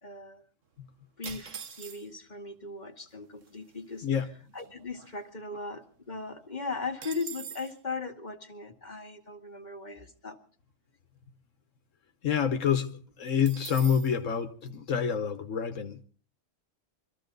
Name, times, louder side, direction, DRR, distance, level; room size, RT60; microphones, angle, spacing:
voice 1, 0.0-0.4 1.2-4.1 4.5-10.4, left 4 dB, 35° left, 2.1 m, -38 dB
sound 1, 1.2-2.3 3.1-3.2 3.4-3.7 4.2-5.7 6.0-6.1 6.4-7.8 13.4-14.2, right 7 dB, 85° right, 1.5 m, -44 dB
voice 2, 12.2-16.0, left 7 dB, 85° left, 1.4 m, -27 dB
24.5 x 14.5 x 3.9 m
omnidirectional pair, 1.3 m